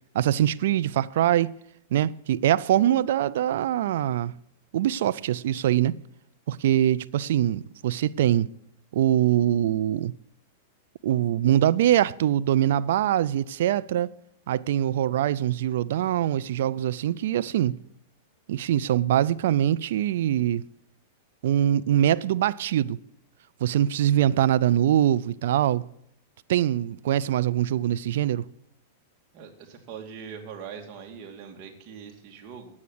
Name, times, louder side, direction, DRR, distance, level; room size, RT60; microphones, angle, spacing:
voice 1, 0.1-1.5 1.9-4.3 4.7-6.0 6.5-8.5 8.9-10.1 11.0-14.1 14.5-17.8 18.5-20.7 21.4-23.0 23.6-25.9 26.5-28.4, right 11 dB, 70° right, 0.4 m, -23 dB
voice 2, 29.3-32.7, right 7 dB, 45° right, 2.4 m, -42 dB
9.5 x 8.6 x 9.4 m
hypercardioid pair, 120°, 0 cm